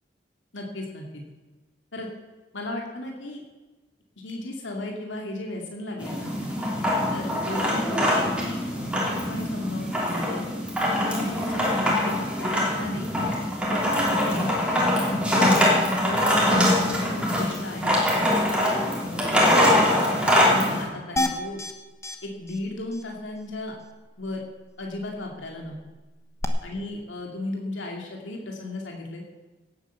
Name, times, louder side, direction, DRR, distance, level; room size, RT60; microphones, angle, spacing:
voice 1, 0.5-1.2 1.9-2.1 2.5-3.4 4.2-6.3 7.1-8.6 8.9-10.4 10.9-13.1 13.7-14.9 15.4-17.9 18.5-18.8 19.5-21.6 22.2-23.7 24.2-24.4 24.8-25.8 26.6-29.2, left 2 dB, 80° left, 0 dB, 2.3 m, -35 dB
sound 1, 6.0-20.8, left 1 dB, 5° right, 3.2 m, -23 dB
sound 2, 21.2-21.7 22.0-22.2 22.5-22.6 22.9-23.0 26.4-26.5, left 1 dB, 15° left, 1.1 m, -27 dB
17.5 x 9.0 x 7.0 m, 1.2 s
head